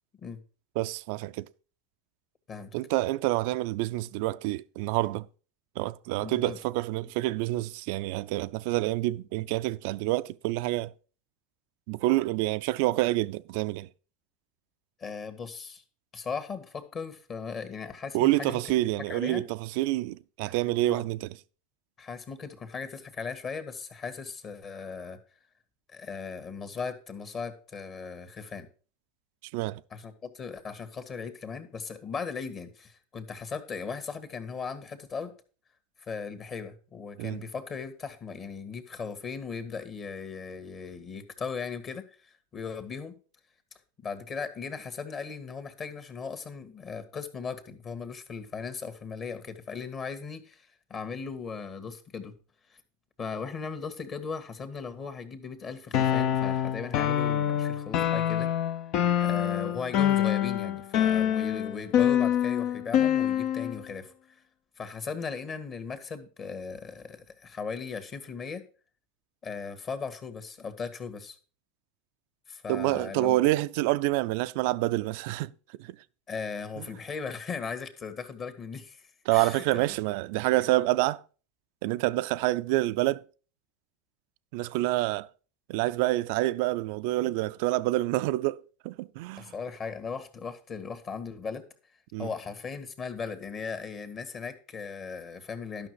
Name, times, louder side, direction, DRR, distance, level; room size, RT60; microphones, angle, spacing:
voice 1, 0.8-1.5 2.7-5.3 5.8-10.9 11.9-13.9 18.1-21.4 29.5-29.8 37.2-37.4 72.7-75.5 75.8-76.0 76.8-76.9 79.3-81.2 81.8-83.2 84.5-85.3 85.7-89.5 92.1-92.3, right 18 dB, 65° right, 0.4 m, -27 dB
voice 2, 6.2-6.6 15.0-15.8 16.1-18.6 19.1-19.4 20.4-20.6 20.9-21.0 22.0-25.2 25.9-28.7 29.9-35.3 36.0-43.2 44.0-52.3 52.7-52.8 53.2-58.5 59.2-64.4 64.8-68.6 69.4-71.4 72.5-73.4 76.3-79.8 89.4-91.6 92.2-95.9, left 5 dB, 35° left, 1.8 m, -38 dB
sound 1, 55.9-63.8, left 10 dB, 55° left, 0.8 m, -26 dB
11.5 x 5.9 x 4.8 m
hypercardioid pair, 100°, 0 cm